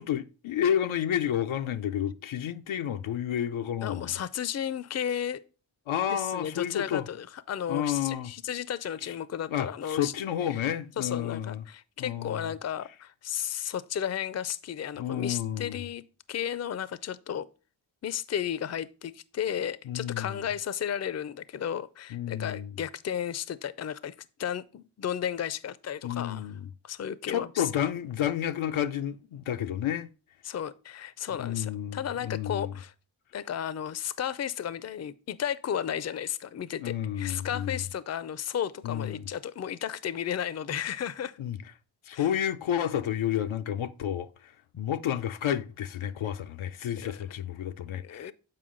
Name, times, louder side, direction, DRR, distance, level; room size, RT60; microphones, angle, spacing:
voice 1, 0.0-4.1 5.9-7.1 7.7-8.3 9.1-9.2 9.5-11.6 12.0-12.5 15.0-15.8 19.9-20.4 22.1-22.7 26.0-26.7 27.3-30.1 31.4-32.7 36.8-37.8 38.8-39.2 41.4-41.6 42.1-44.5 44.8-48.3, left 10 dB, 90° left, 0.6 m, -31 dB
voice 2, 3.8-5.4 6.1-10.1 10.5-10.6 11.0-16.0 16.3-17.5 18.0-24.1 24.4-26.5 26.8-27.7 30.4-32.9 33.3-41.4 42.1-42.3 47.0-47.2 47.9-48.3, left 9 dB, 35° left, 0.5 m, -33 dB
7.6 x 4.6 x 3.7 m
cardioid pair, 50°, 47 cm